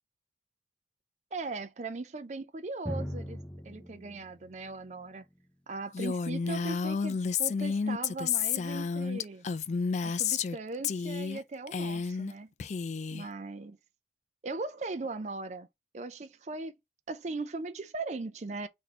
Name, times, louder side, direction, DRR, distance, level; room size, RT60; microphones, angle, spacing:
voice 1, 1.3-3.4 3.6-5.2 5.7-9.5 10.0-12.5 13.1-13.8 14.4-15.7 15.9-16.7 17.1-18.7, right 3 dB, 40° right, 0.4 m, -39 dB
Drum, 2.9-6.4, equal, 5° left, 0.8 m, -41 dB
Female speech woman speaking, 5.9-10.6 10.8-11.4 11.7-12.3 12.6-13.3, left 6 dB, 40° left, 0.3 m, -31 dB
4.2 x 2.7 x 4.3 m
head